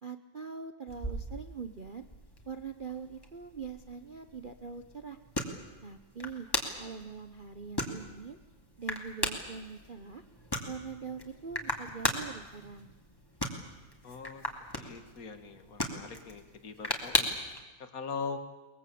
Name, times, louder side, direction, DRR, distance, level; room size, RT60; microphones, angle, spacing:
voice 1, 0.0-2.0 2.5-5.2 5.8-6.5 6.8-8.4 8.8-10.2 10.7-12.9, right 5 dB, 75° right, 8 dB, 0.4 m, -43 dB
sound 1, 0.9-17.6, left 1 dB, 10° left, 2.5 m, -38 dB
voice 2, 14.0-14.4 14.8-17.3 17.8-18.4, left 5 dB, 40° left, 8 dB, 2.2 m, -41 dB
22.5 x 21.5 x 8.6 m, 1.2 s
omnidirectional pair, 2.4 m